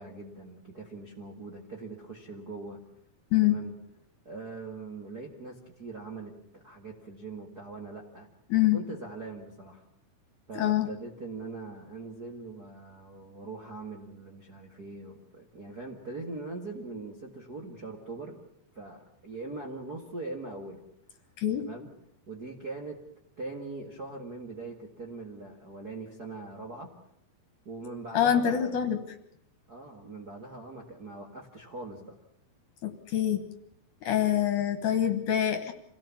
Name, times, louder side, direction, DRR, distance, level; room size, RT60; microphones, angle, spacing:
voice 1, 0.0-2.8 3.4-3.8 4.2-8.3 8.7-9.8 10.5-18.4 18.7-20.8 21.6-21.9 22.3-23.0 23.4-26.9 27.6-28.8 29.7-32.2, right 3 dB, 40° right, 0 dB, 1.5 m, -41 dB
voice 2, 10.6-10.9 21.4-21.7 28.1-29.0 32.8-33.4 34.0-35.7, left 11 dB, 60° left, 8 dB, 2.5 m, -25 dB
26.5 x 17.5 x 7.2 m, 0.73 s
omnidirectional pair, 4.6 m